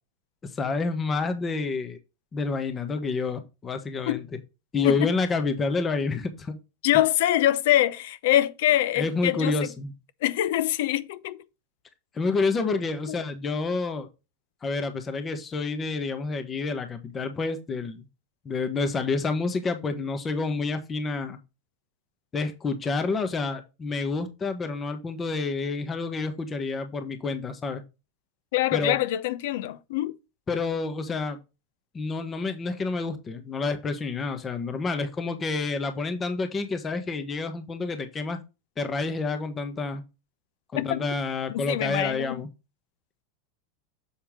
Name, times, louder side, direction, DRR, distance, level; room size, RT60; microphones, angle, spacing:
voice 1, 0.4-2.0 2.3-4.2 4.7-6.6 8.9-9.9 12.1-14.1 14.6-18.1 18.4-21.4 22.3-27.8 28.7-29.0 30.5-31.4 31.9-38.4 38.8-40.0 40.7-42.5, left 3 dB, 25° left, 1.3 m, -29 dB
voice 2, 6.8-9.7 10.2-11.4 13.1-13.2 28.5-30.1 40.7-41.1 41.5-42.4, left 13 dB, 70° left, 0.7 m, -24 dB
7.4 x 4.4 x 4.9 m
hypercardioid pair, 115°, 0 cm